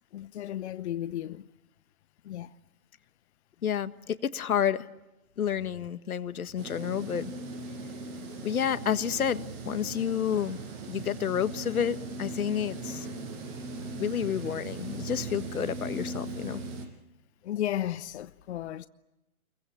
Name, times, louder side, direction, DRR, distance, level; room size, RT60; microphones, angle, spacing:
voice 1, 0.1-1.5 2.2-2.6 17.4-18.9, left 12 dB, 50° left, 0.9 m, -34 dB
voice 2, 3.6-4.9 5.4-7.3 8.4-10.6 10.9-13.1 14.0-16.6, left 8 dB, 70° left, 1.6 m, -30 dB
sound 1, 6.6-16.9, right 3 dB, 40° right, 6.5 m, -39 dB
29.0 x 23.0 x 8.6 m
hypercardioid pair, 130°, 45 cm